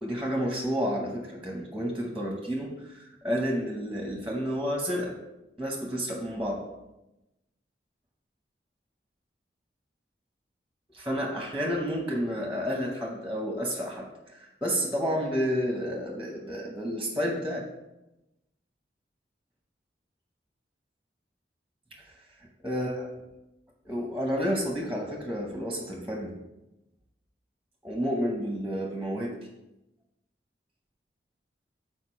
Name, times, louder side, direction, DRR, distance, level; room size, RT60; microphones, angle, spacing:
voice 1, 0.0-5.1 5.6-6.6 10.9-14.1 14.3-17.6 22.6-23.1 23.8-26.3 27.8-29.3, equal, 5° right, -1 dB, 0.9 m, -30 dB
6.6 x 4.5 x 4.4 m, 0.96 s
head